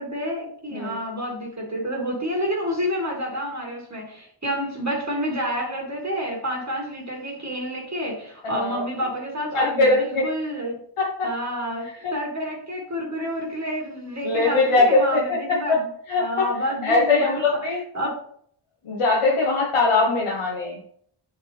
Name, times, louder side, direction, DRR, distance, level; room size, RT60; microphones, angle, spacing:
voice 1, 0.0-10.8 11.2-15.9 16.2-17.4 17.9-18.2, equal, 35° right, -2 dB, 2.1 m, -29 dB
voice 2, 8.4-8.8 9.5-10.2 11.0-11.3 11.8-12.1 14.2-15.4 15.7-15.8 16.1-16.5 16.8-17.8 18.8-20.8, left 3 dB, 90° left, -3 dB, 1.3 m, -21 dB
9.5 x 4.5 x 3.4 m, 0.64 s
cardioid pair, 55°, 50 cm